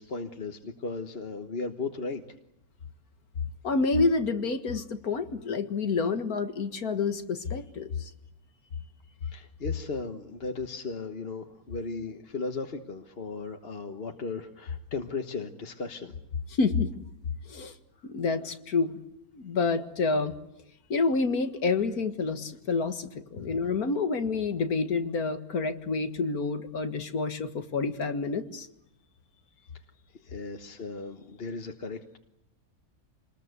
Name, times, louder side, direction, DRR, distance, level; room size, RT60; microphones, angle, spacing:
voice 1, 0.0-2.2 9.2-16.1 23.4-23.5 29.6-29.7 30.2-32.2, left 4 dB, 45° left, 5 dB, 1.5 m, -36 dB
voice 2, 3.6-8.1 16.6-16.9 17.5-17.7 18.0-19.0 19.3-20.3 20.9-28.7, left 4 dB, 90° left, 9 dB, 2.2 m, -28 dB
27.0 x 20.5 x 8.1 m, 0.81 s
omnidirectional pair, 1.5 m